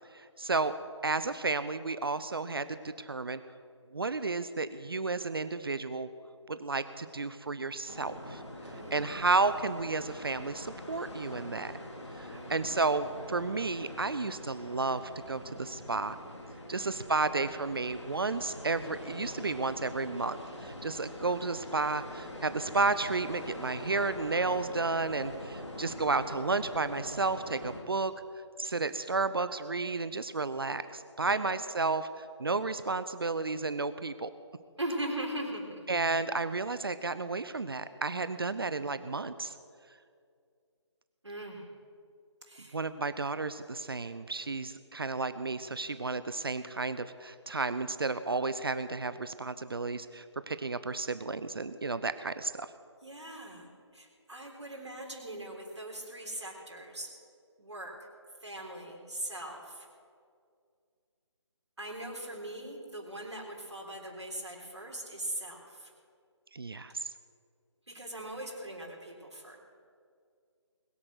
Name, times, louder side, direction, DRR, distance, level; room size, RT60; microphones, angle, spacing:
voice 1, 0.1-0.8 1.0-3.4 3.9-6.1 6.5-8.4 8.9-11.7 12.2-16.2 16.7-20.4 20.6-28.1 28.6-34.3 35.9-39.5 42.7-52.7 66.5-67.1, right 3 dB, 50° right, 13 dB, 0.6 m, -32 dB
sound 1, 7.9-27.8, left 1 dB, 70° left, 3.1 m, -44 dB
voice 2, 8.7-9.2 12.3-12.6 16.8-17.5 31.2-31.5 34.8-35.9 38.5-39.0 41.2-41.7 42.4-42.8 53.0-53.7 53.9-57.1 57.6-58.1 58.4-59.9 61.8-65.9 67.9-69.6, right 1 dB, 70° right, -2 dB, 3.9 m, -41 dB
21.0 x 8.6 x 6.4 m, 2.2 s
figure-of-eight pair, 155°, 15 cm